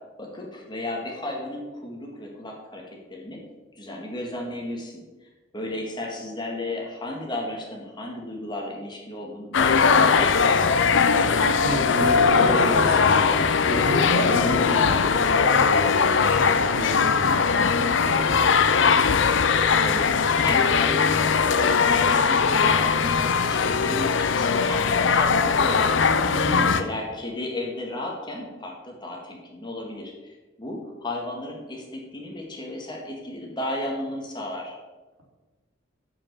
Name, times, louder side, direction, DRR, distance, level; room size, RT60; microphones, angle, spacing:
voice 1, 0.2-3.4 3.7-5.3 5.5-10.9 19.5-25.9 26.7-34.8, left 1 dB, 25° left, -1 dB, 1.9 m, -34 dB
sound 1, 9.5-26.8, left 5 dB, 65° left, 0.6 m, -20 dB
voice 2, 11.6-18.5 26.3-26.9, equal, 85° right, -3 dB, 3.5 m, -30 dB
7.4 x 7.3 x 6.9 m, 1.2 s
head